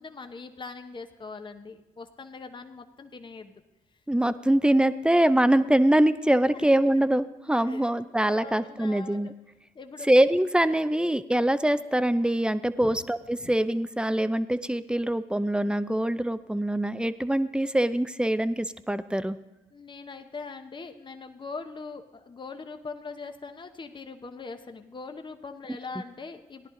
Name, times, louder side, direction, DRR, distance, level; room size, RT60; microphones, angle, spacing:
voice 1, 0.0-3.5 6.5-6.7 7.7-7.8 8.3-9.3 9.7-10.1 12.8-13.0 13.4-13.5 19.7-26.7, left 4 dB, 30° left, 7 dB, 0.9 m, -41 dB
voice 2, 4.1-9.3 10.0-19.4, right 1 dB, 5° right, 13 dB, 0.6 m, -24 dB
14.5 x 10.5 x 3.9 m, 1.0 s
supercardioid pair, 60°, 16 cm